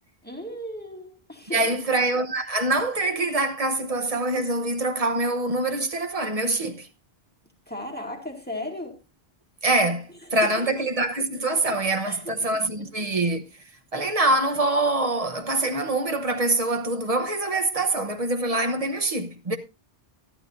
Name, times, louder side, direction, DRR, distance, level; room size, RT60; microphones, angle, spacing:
voice 1, 0.2-1.9 7.7-9.0 10.1-10.8 11.7-12.9, left 1 dB, 10° left, 2.1 m, -37 dB
voice 2, 1.5-6.9 9.6-13.4 13.9-19.6, right 2 dB, 35° right, 1.1 m, -24 dB
13.0 x 11.5 x 2.7 m
omnidirectional pair, 1.1 m